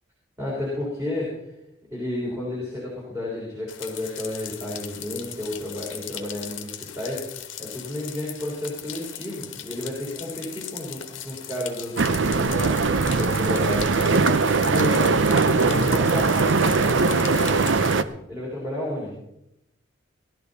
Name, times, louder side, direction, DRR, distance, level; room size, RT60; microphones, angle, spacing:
voice 1, 0.4-1.5 1.9-7.3 7.6-12.8 13.2-15.2 15.5-17.5 18.3-19.1, left 1 dB, 15° right, -5 dB, 3.6 m, -31 dB
sound 1, 3.7-17.9, left 11 dB, 80° left, 1.3 m, -38 dB
sound 2, 12.0-18.0, right 4 dB, 75° right, 0.6 m, -20 dB
18.0 x 12.0 x 4.1 m, 0.83 s
head